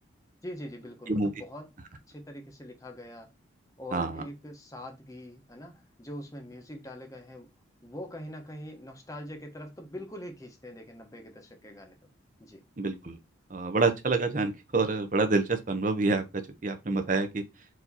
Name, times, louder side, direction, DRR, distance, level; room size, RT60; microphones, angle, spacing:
voice 1, 0.4-1.7 2.1-3.3 3.8-7.5 7.8-12.0 12.4-12.6, left 1 dB, 15° left, 0.9 m, -43 dB
voice 2, 3.9-4.2 12.8-13.2 13.5-17.4, right 3 dB, 40° right, 0.7 m, -27 dB
4.7 x 2.8 x 4.0 m
head